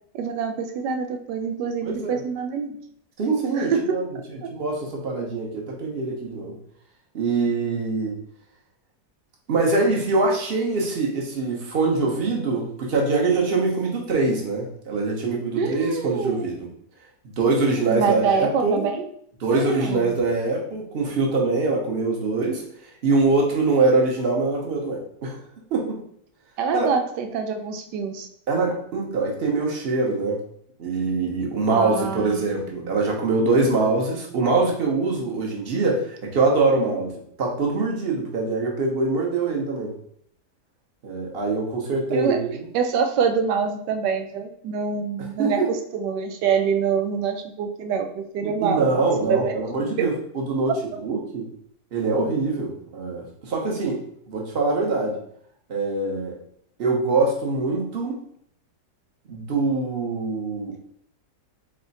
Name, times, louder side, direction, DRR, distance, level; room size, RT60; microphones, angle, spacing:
voice 1, 0.1-2.8 3.6-4.5 15.6-16.6 17.9-19.0 19.5-20.2 26.6-28.3 31.7-32.9 42.1-42.4 42.7-48.9 49.2-50.1 50.7-50.8, right 6 dB, 80° right, 6 dB, 1.2 m, -26 dB
voice 2, 1.8-2.2 3.2-4.0 4.5-6.6 7.1-8.1 9.5-16.7 17.2-18.9 19.4-22.6 23.0-25.4 25.7-26.0 26.7-26.9 28.5-30.4 30.8-37.1 37.4-39.9 41.0-42.7 45.2-45.7 48.4-50.7 51.0-51.5 51.9-54.0 54.3-55.2 55.7-56.3 56.8-58.2 59.3-60.8, right 3 dB, 45° right, -1 dB, 1.0 m, -23 dB
3.6 x 3.3 x 4.0 m, 0.67 s
omnidirectional pair, 1.8 m